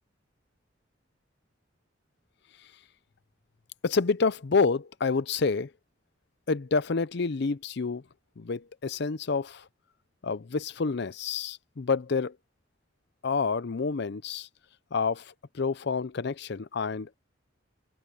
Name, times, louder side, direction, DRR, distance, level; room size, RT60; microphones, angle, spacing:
voice 1, 3.8-5.7 6.5-8.0 8.4-9.7 10.2-12.4 13.2-14.5 14.9-17.1, left 4 dB, 60° left, 0.6 m, -28 dB
head